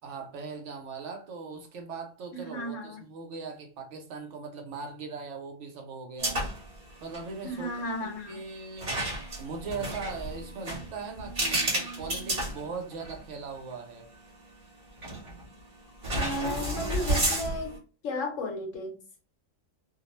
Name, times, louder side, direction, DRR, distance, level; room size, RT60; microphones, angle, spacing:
voice 1, 0.0-6.5 7.0-8.9 9.4-14.1, right 4 dB, 65° right, 0.9 m, -40 dB
voice 2, 2.3-3.0 7.4-8.4 16.2-17.7 18.0-19.0, left 1 dB, 70° left, 1.1 m, -34 dB
sound 1, 6.2-6.7 7.0-7.2 8.8-13.2 13.7-13.8 15.0-15.4 16.0-17.8, right 1 dB, 30° right, 1.0 m, -31 dB
2.6 x 2.0 x 2.9 m
omnidirectional pair, 1.4 m